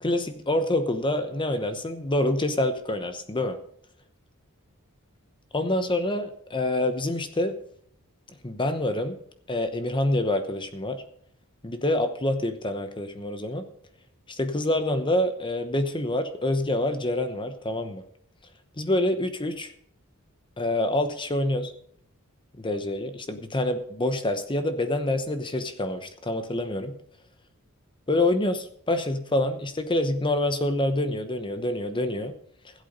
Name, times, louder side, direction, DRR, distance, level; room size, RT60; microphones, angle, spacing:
voice 1, 0.0-3.6 5.5-7.6 8.4-9.2 9.5-11.0 11.6-13.6 14.3-18.0 18.8-19.7 20.6-21.7 22.6-27.0 28.1-32.3, left 1 dB, 20° left, 8 dB, 0.9 m, -26 dB
16.0 x 8.3 x 5.3 m, 0.65 s
head